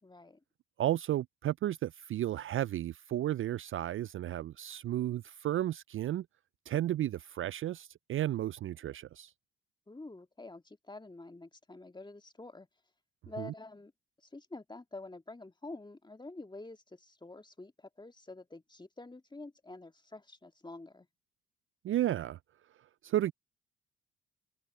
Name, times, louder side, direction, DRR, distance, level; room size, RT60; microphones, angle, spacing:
voice 1, 0.0-0.4 9.9-12.7 13.3-13.9 14.2-21.1, left 2 dB, 15° left, 1.9 m, -48 dB
voice 2, 0.8-6.3 6.7-9.3 13.4-13.5 21.8-22.4 23.0-23.3, right 13 dB, 45° right, 0.5 m, -33 dB
hypercardioid pair, 45°, 29 cm